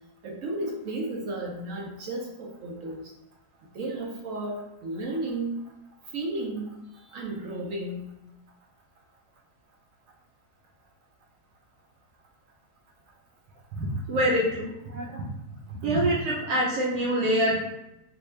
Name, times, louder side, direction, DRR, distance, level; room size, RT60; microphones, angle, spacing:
voice 1, 0.2-3.0 3.7-5.6 6.1-6.7 7.1-8.0, right 2 dB, 70° right, 0 dB, 0.9 m, -33 dB
voice 2, 13.8-15.2 15.8-17.6, right 1 dB, 85° right, -5 dB, 1.3 m, -25 dB
3.4 x 2.6 x 3.2 m, 0.88 s
omnidirectional pair, 1.6 m